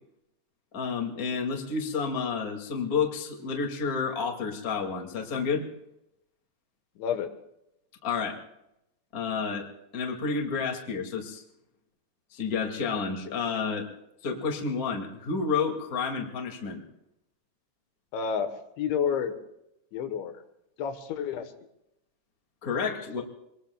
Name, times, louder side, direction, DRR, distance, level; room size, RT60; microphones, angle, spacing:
voice 1, 0.7-5.7 8.0-8.4 9.1-9.7 9.9-11.4 12.3-13.9 14.2-16.8 22.6-23.2, left 5 dB, 30° left, 2 dB, 1.8 m, -30 dB
voice 2, 7.0-7.3 18.1-19.4 19.9-20.4 20.8-21.5, left 7 dB, 90° left, 7 dB, 3.7 m, -30 dB
26.5 x 21.5 x 2.4 m, 0.84 s
omnidirectional pair, 5.1 m